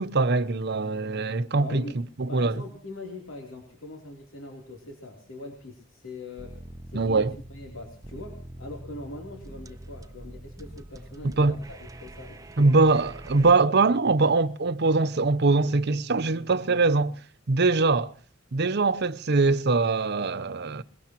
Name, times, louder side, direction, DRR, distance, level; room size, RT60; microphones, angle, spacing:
voice 1, 0.0-1.8 2.2-2.6 6.9-7.4 11.2-11.6 12.6-17.1 17.5-18.1 18.5-20.8, right 3 dB, 55° right, 0.7 m, -22 dB
voice 2, 1.6-2.0 2.3-7.2 7.5-12.7, left 2 dB, 90° left, 3.3 m, -42 dB
sound 1, 6.4-13.5, right 1 dB, 15° right, 0.8 m, -44 dB
22.5 x 21.5 x 3.0 m
head